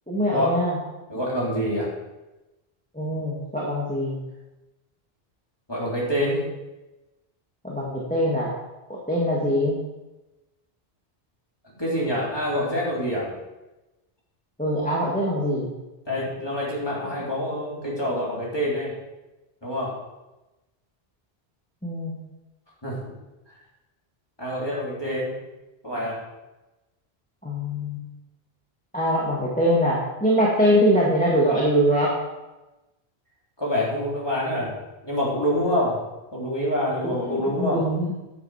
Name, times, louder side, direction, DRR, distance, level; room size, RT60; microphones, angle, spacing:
voice 1, 0.1-0.8 2.9-4.2 7.6-8.5 8.9-9.8 14.6-15.7 21.8-22.2 27.4-28.1 28.9-32.2 37.0-38.1, equal, 10° left, -6 dB, 1.9 m, -23 dB
voice 2, 1.1-1.9 5.7-6.5 11.8-13.3 16.1-18.9 19.6-20.0 22.8-23.1 24.4-25.4 25.8-26.2 33.6-34.7 35.0-36.0 36.3-37.8, equal, 25° left, -6 dB, 3.6 m, -26 dB
10.0 x 8.6 x 5.0 m, 1.0 s
omnidirectional pair, 1.1 m